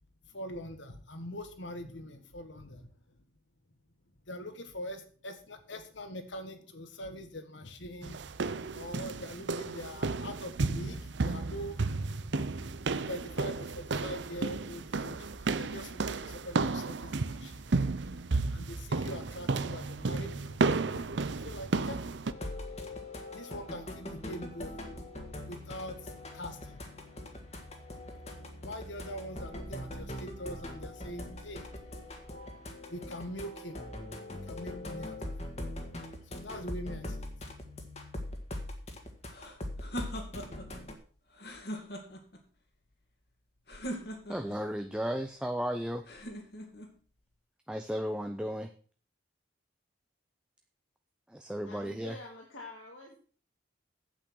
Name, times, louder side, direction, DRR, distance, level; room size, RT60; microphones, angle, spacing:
voice 1, 0.3-2.9 4.3-8.2 8.7-11.8 12.9-17.6 18.5-22.1 23.3-24.8 25.5-26.0 26.3-26.8 28.6-31.6 32.9-33.8 34.5-35.5 36.3-37.3, equal, 75° left, 8 dB, 1.6 m, -43 dB
sound 1, 8.0-22.3, right 3 dB, 70° right, 0.6 m, -33 dB
sound 2, 22.3-40.9, left 1 dB, 35° left, 1.8 m, -42 dB
sound 3, 39.3-40.7 41.3-42.4 43.7-44.6 46.1-46.9, equal, 55° left, 2.3 m, -41 dB
voice 2, 44.3-46.0 47.7-48.7 51.3-52.1, equal, 5° right, 6 dB, 0.6 m, -34 dB
voice 3, 51.6-53.2, left 2 dB, 90° left, -1 dB, 2.5 m, -47 dB
9.0 x 8.5 x 6.3 m, 0.43 s
head